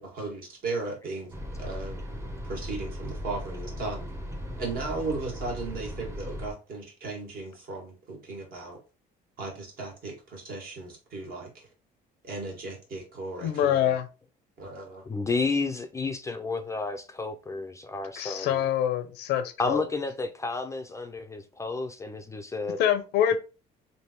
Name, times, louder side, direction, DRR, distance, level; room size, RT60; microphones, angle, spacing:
voice 1, 0.0-2.0 2.4-4.1 4.6-8.8 9.4-11.7 12.2-14.0 14.6-15.0, right 3 dB, 60° right, 1.7 m, -36 dB
sound 1, 1.3-6.5, equal, 15° right, 0.7 m, -37 dB
voice 2, 13.4-14.1 18.2-19.8 22.8-23.4, left 10 dB, 85° left, 0.6 m, -25 dB
voice 3, 15.0-18.6 19.6-22.8, left 3 dB, 20° left, 0.4 m, -31 dB
3.3 x 2.6 x 2.9 m
cardioid pair, 110°, 17 cm